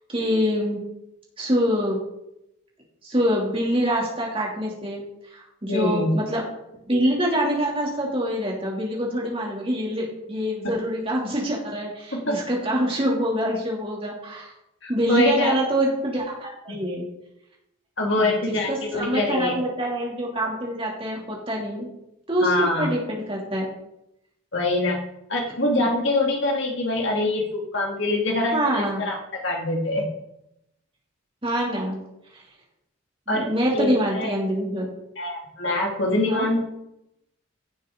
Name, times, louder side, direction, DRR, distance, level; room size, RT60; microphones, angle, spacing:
voice 1, 0.1-0.8 1.4-2.0 3.0-5.0 5.3-6.4 6.9-14.5 14.9-17.1 18.2-21.9 22.3-23.7 25.7-25.9 28.5-29.0 31.4-32.0 33.3-34.9 36.2-36.5, equal, 25° right, -3 dB, 2.8 m, -25 dB
voice 2, 5.7-6.2 12.1-12.4 14.8-15.5 16.7-16.8 18.0-19.6 22.4-22.9 24.5-25.0 25.3-30.1 33.3-34.3 35.2-36.7, left 2 dB, 60° left, 0 dB, 2.2 m, -24 dB
15.5 x 6.7 x 3.8 m, 0.86 s
head